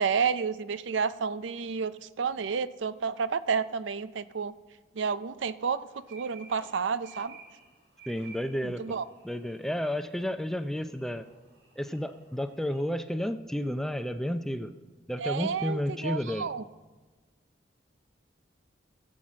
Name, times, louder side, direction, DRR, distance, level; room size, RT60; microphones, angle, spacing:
voice 1, 0.0-4.5 5.0-7.4 8.6-9.1 15.2-16.6, right 6 dB, 80° right, 15 dB, 0.5 m, -30 dB
sound 1, 5.9-12.8, right 4 dB, 60° right, 3.6 m, -54 dB
voice 2, 8.1-9.0 9.2-11.3 11.8-14.7 15.1-16.5, equal, ahead, 9 dB, 0.4 m, -31 dB
16.5 x 7.7 x 7.3 m, 1.3 s
head